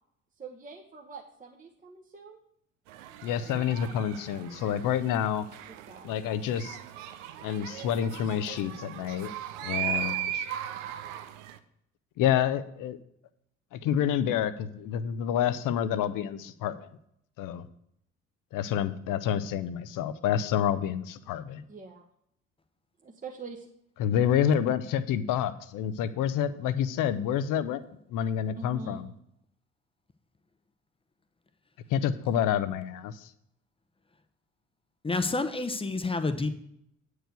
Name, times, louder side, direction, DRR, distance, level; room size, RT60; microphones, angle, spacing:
voice 1, 0.4-2.4 5.7-6.1 9.5-10.2 21.7-22.0 23.0-23.7 28.6-29.0, right 4 dB, 20° right, 1 dB, 1.1 m, -44 dB
sound 1, 2.9-11.6, right 10 dB, 70° right, 0.7 m, -38 dB
voice 2, 3.2-5.4 6.0-6.8 7.4-9.3 9.6-10.4 12.2-13.0 13.7-16.9 17.4-17.7 18.5-21.6 24.0-27.8 28.1-29.1 31.9-33.3, left 9 dB, 50° left, 14 dB, 0.7 m, -28 dB
voice 3, 35.0-36.5, left 3 dB, 15° left, 10 dB, 0.8 m, -29 dB
8.8 x 4.8 x 6.8 m, 0.72 s
figure-of-eight pair, 55°, 40 cm